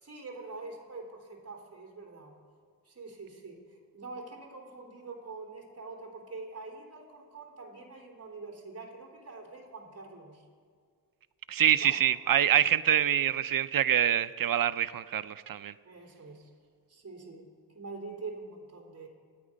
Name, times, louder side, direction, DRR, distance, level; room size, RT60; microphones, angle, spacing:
voice 1, 0.0-2.4 2.9-10.4 11.8-12.0 15.8-16.5 16.9-17.5 17.7-19.1, right 3 dB, 40° right, 0 dB, 3.5 m, -45 dB
voice 2, 11.5-15.7, right 10 dB, 65° right, 13 dB, 0.6 m, -25 dB
27.5 x 9.7 x 5.2 m, 2.1 s
wide cardioid pair, 110°, 37 cm